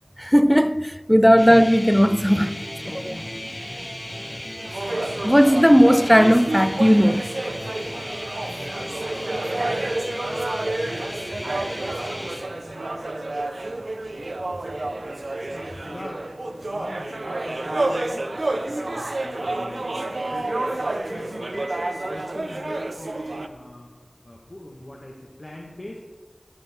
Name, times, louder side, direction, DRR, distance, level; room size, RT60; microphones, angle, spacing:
voice 1, 0.2-2.6 3.1-3.2 5.2-7.3, equal, ahead, 0.3 m, -16 dB
sound 1, 1.4-12.4, equal, 25° left, 3.0 m, -35 dB
voice 2, 2.5-3.9 8.9-10.8 12.4-13.4 15.5-21.8 22.0-23.9 24.2-26.0, left 1 dB, 50° left, 1.4 m, -42 dB
sound 2, 4.6-23.5, right 2 dB, 80° right, 0.7 m, -29 dB
Microwave oven, 11.6-22.3, right 1 dB, 30° right, 1.4 m, -48 dB
16.5 x 7.8 x 3.6 m
wide cardioid pair, 45°, 0 cm